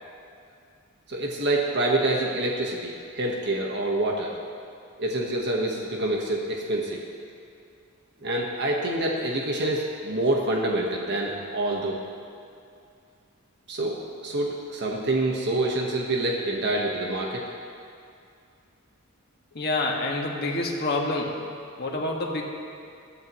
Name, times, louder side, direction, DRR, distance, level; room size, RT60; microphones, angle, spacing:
voice 1, 1.1-4.4 5.0-7.0 8.2-12.0 13.7-17.5, right 1 dB, 55° right, -1 dB, 1.4 m, -26 dB
voice 2, 19.5-21.4 21.8-22.4, left 2 dB, 50° left, -1 dB, 1.9 m, -27 dB
21.5 x 15.0 x 3.1 m, 2.4 s
head